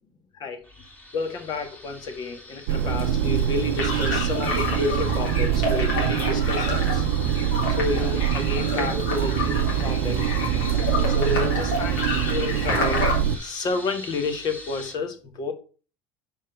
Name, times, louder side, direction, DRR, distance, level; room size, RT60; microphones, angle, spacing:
sound 1, 0.6-14.9, left 1 dB, 15° left, 2.5 m, -42 dB
voice 1, 1.1-7.0 7.7-10.3 11.1-13.0 13.4-15.5, left 4 dB, 45° left, 1.7 m, -30 dB
sound 2, 2.7-13.4, right 9 dB, 85° right, 0.7 m, -24 dB
sound 3, 3.8-13.2, left 3 dB, 90° left, 3.5 m, -30 dB
5.4 x 4.8 x 5.8 m
supercardioid pair, 110°, 10 cm